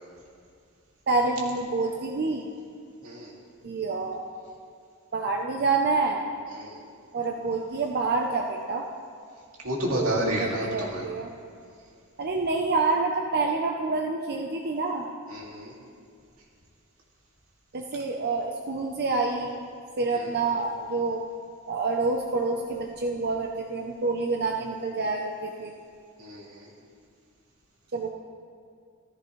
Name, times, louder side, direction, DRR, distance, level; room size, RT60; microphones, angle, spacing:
voice 1, 1.1-2.5 3.6-4.2 5.1-6.2 7.1-8.9 9.9-11.3 12.2-15.1 17.7-19.7 20.0-21.2 21.7-25.7 27.9-28.1, right 3 dB, 50° right, 1 dB, 0.7 m, -27 dB
voice 2, 3.0-3.3 6.5-6.8 9.6-11.0 15.3-15.7 20.1-20.4 26.2-26.7, right 1 dB, 80° right, -3 dB, 2.4 m, -31 dB
14.5 x 14.0 x 3.2 m, 2.3 s
head